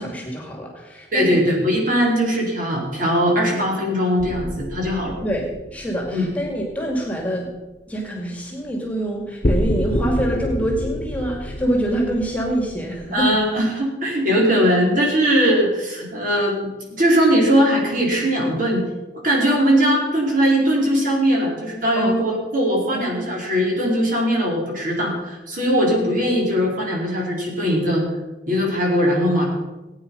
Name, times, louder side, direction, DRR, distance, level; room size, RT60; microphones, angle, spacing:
voice 1, 0.0-1.5 5.2-7.5 7.9-13.4 22.0-22.2 22.9-23.1, right 1 dB, 10° left, 0 dB, 2.4 m, -25 dB
voice 2, 1.1-5.1 6.1-6.3 13.1-16.7 17.0-18.8 19.2-28.0 28.5-29.5, equal, 50° right, -2 dB, 4.5 m, -20 dB
sound 1, 4.2-6.9 9.4-13.5, left 1 dB, 40° left, 1.2 m, -28 dB
17.5 x 9.3 x 5.5 m, 1.1 s
head